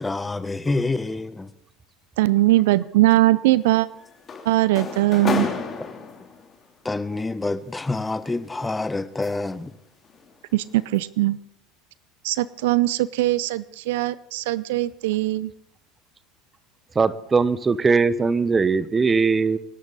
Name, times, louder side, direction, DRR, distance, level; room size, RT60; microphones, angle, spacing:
voice 1, 0.0-1.5 6.8-9.7, left 3 dB, 15° left, 1.1 m, -27 dB
voice 2, 2.2-3.9 4.5-5.5 10.5-11.4 12.2-15.5, right 17 dB, 70° right, 0.5 m, -20 dB
sound 1, 3.6-6.6 7.7-9.6 10.0-10.3 10.7-11.0, left 5 dB, 35° left, 3.3 m, -32 dB
voice 3, 16.9-19.6, right 4 dB, 25° right, 1.0 m, -20 dB
25.5 x 12.0 x 4.1 m
hypercardioid pair, 75°, 0 cm